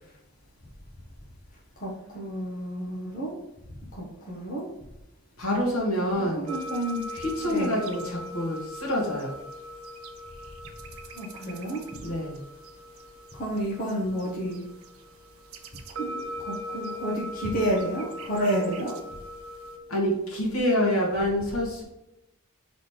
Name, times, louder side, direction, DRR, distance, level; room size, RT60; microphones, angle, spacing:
voice 1, 1.8-3.4 4.0-4.7 6.3-7.0 7.5-7.8 11.1-11.8 13.4-14.6 16.0-19.0, right 1 dB, 40° left, -4 dB, 1.4 m, -30 dB
voice 2, 5.4-6.5 7.1-9.4 12.0-12.4 19.9-21.8, left 1 dB, 70° left, -2 dB, 2.1 m, -27 dB
sound 1, 6.5-19.8, equal, 75° right, 0.8 m, -40 dB
5.5 x 4.2 x 4.8 m, 0.89 s
head